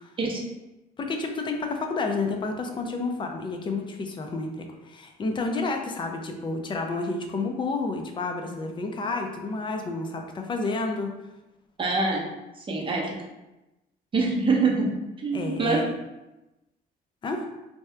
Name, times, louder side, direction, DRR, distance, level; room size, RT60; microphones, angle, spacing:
voice 1, 1.0-11.1 12.8-12.9 15.3-15.8 17.2-17.4, left 3 dB, 30° left, 3 dB, 0.4 m, -30 dB
voice 2, 11.8-12.3 12.7-13.2 14.1-14.9 15.2-15.8, right 4 dB, 30° right, -1 dB, 0.7 m, -24 dB
2.7 x 2.2 x 3.2 m, 1.0 s
cardioid pair, 110°, 17 cm